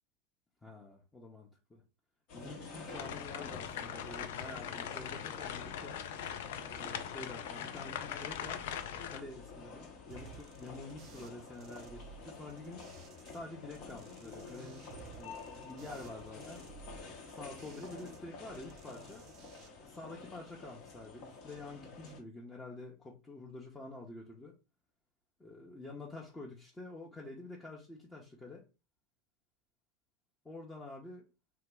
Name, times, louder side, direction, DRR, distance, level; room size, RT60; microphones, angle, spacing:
voice 1, 0.6-1.8 2.3-6.0 6.7-8.6 9.1-12.8 13.3-14.8 15.2-16.6 17.3-19.2 19.9-24.5 25.4-28.6 30.4-31.3, left 2 dB, 15° left, -3 dB, 0.7 m, -48 dB
sound 1, 2.3-22.2, left 4 dB, 55° left, 0.9 m, -49 dB
sound 2, 2.9-9.2, left 9 dB, 70° left, 0.3 m, -41 dB
sound 3, 10.1-13.4 13.7-18.2 18.5-19.7, right 7 dB, 45° right, 0.5 m, -56 dB
2.8 x 2.3 x 3.3 m, 0.29 s
hypercardioid pair, 90°, 0 cm